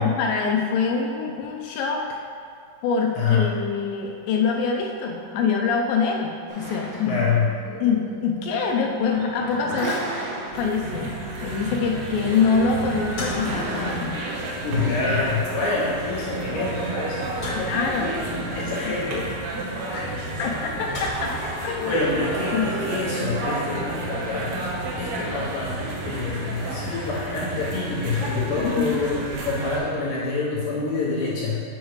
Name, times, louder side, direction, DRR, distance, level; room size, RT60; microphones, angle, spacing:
voice 1, 0.0-2.2 2.8-7.2 7.8-10.1 10.5-14.2 17.6-19.0 20.4-22.0 22.5-22.7 28.6-29.0, left 5 dB, 90° left, 0 dB, 2.0 m, -25 dB
voice 2, 3.2-3.5 7.1-7.5 14.6-17.6 18.1-20.1 21.9-24.6 25.0-31.6, left 4 dB, 70° left, -6 dB, 2.3 m, -27 dB
sound 1, 6.5-14.0, right 2 dB, 65° right, 2.1 m, -36 dB
sound 2, 10.2-25.3, left 2 dB, 40° left, 1.7 m, -42 dB
sound 3, 10.5-29.8, right 2 dB, 80° right, 3.0 m, -31 dB
8.1 x 6.4 x 3.1 m, 2.3 s
omnidirectional pair, 4.7 m